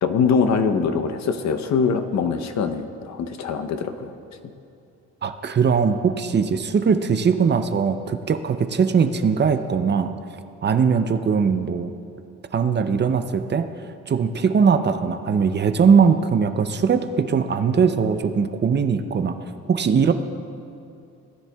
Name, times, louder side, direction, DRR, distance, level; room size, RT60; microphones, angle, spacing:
voice 1, 0.0-4.1, left 5 dB, 65° left, 8 dB, 0.8 m, -23 dB
voice 2, 5.2-10.1 10.6-11.9 12.5-13.7 14.1-19.4 19.7-20.1, right 6 dB, 35° right, 9 dB, 0.6 m, -20 dB
18.0 x 10.0 x 2.3 m, 2.6 s
cardioid pair, 90°, 30 cm